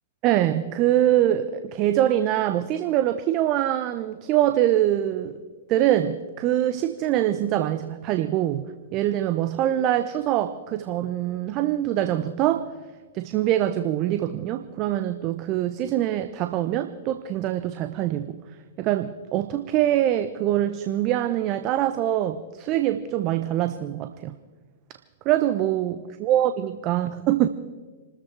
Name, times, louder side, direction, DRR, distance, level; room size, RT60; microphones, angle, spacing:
voice 1, 0.2-5.4 5.7-12.7 13.1-18.4 18.8-24.4 25.2-27.5, right 12 dB, 40° right, 10 dB, 0.7 m, -24 dB
28.5 x 13.5 x 3.4 m, 1.3 s
hypercardioid pair, 110°, 0 cm